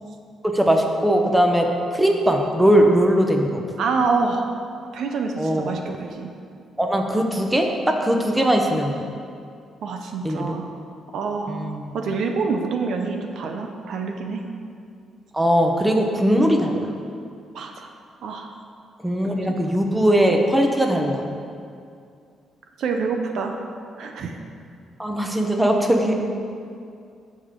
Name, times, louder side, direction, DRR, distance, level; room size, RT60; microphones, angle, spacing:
voice 1, 0.4-1.7 1.9-3.6 5.4-5.7 6.8-8.9 10.2-10.5 11.5-11.9 15.3-16.9 19.0-21.3 25.0-26.3, equal, 10° right, 2 dB, 1.1 m, -20 dB
voice 2, 3.8-4.5 4.9-6.3 9.8-10.7 11.1-14.4 17.5-17.9 18.2-18.5 22.8-23.6 24.0-24.4, right 4 dB, 70° right, 4 dB, 0.8 m, -26 dB
15.0 x 5.3 x 3.8 m, 2.4 s
cardioid pair, 90°, 0 cm